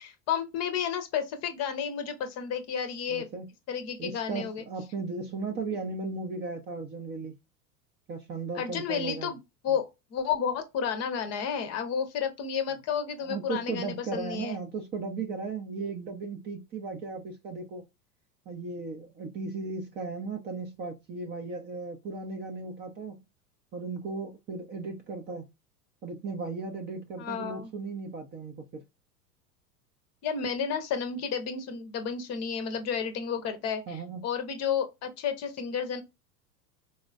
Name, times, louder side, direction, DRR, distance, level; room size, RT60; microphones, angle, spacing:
voice 1, 0.0-3.3 3.7-4.6 8.5-9.4 9.6-14.6 27.2-27.7 30.2-36.0, left 7 dB, 35° left, 0.7 m, -31 dB
voice 2, 3.1-3.5 4.0-7.3 8.1-9.3 9.7-9.8 13.2-17.8 18.5-23.2 23.7-25.5 26.0-28.8 33.9-34.3, right 4 dB, 20° right, 0.6 m, -36 dB
4.2 x 2.3 x 2.3 m
figure-of-eight pair, 85°, 48 cm